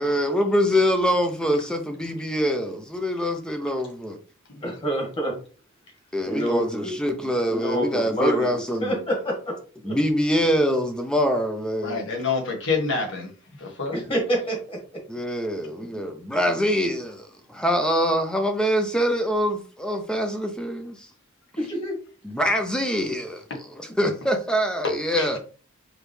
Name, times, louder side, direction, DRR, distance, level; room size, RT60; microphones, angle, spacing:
voice 1, 0.0-4.2 6.1-9.0 9.8-12.0 15.1-21.1 22.2-23.4 24.0-25.4, equal, 5° left, 0.5 m, -24 dB
voice 2, 4.6-5.3 6.2-6.9 7.5-9.5 9.8-10.0 13.9-14.8 21.6-22.0, right 1 dB, 25° left, 1.8 m, -27 dB
voice 3, 11.8-13.3 13.6-13.9 23.5-23.6 24.8-25.3, left 4 dB, 60° left, 1.5 m, -27 dB
4.9 x 3.2 x 3.2 m
head